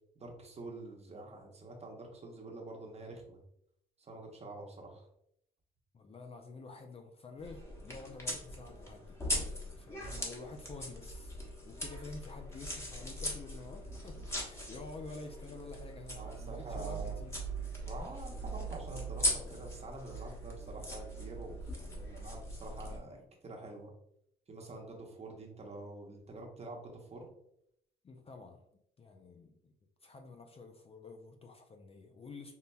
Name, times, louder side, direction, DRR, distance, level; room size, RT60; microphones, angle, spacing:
voice 1, 0.1-3.4 4.0-5.1 16.1-17.2 17.8-23.9 24.5-27.3, right 2 dB, 30° right, 0 dB, 0.9 m, -47 dB
voice 2, 5.9-9.2 9.5-11.4 11.6-17.3 28.0-28.6 29.0-29.7 30.0-32.5, left 3 dB, 30° left, 4 dB, 0.4 m, -49 dB
sound 1, 7.4-23.0, equal, 15° left, 1.0 m, -40 dB
5.4 x 2.1 x 2.2 m, 0.74 s
cardioid pair, 90°, 20 cm